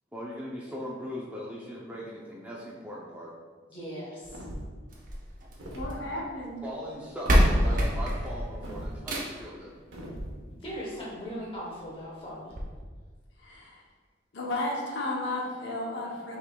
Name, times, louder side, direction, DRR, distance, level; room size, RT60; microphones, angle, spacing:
voice 1, 0.1-3.3 6.6-9.8, equal, 5° right, -5 dB, 0.4 m, -39 dB
voice 2, 3.7-4.4 10.5-12.6, equal, 30° left, -5 dB, 1.2 m, -39 dB
sound 1, 4.2-4.8 5.5-5.9 7.2-7.5 8.6-9.0 9.9-10.3, equal, 85° right, 1.0 m, -38 dB
sound 2, 4.9-6.1 6.9-7.0 7.3-9.6 10.9-11.0 11.5-11.6 11.8-11.9 12.5-12.6, equal, 45° right, 0.7 m, -25 dB
voice 3, 5.7-6.6 13.4-13.7 14.3-16.4, left 2 dB, 65° left, -2 dB, 0.7 m, -33 dB
5.5 x 3.8 x 2.2 m, 1.5 s
head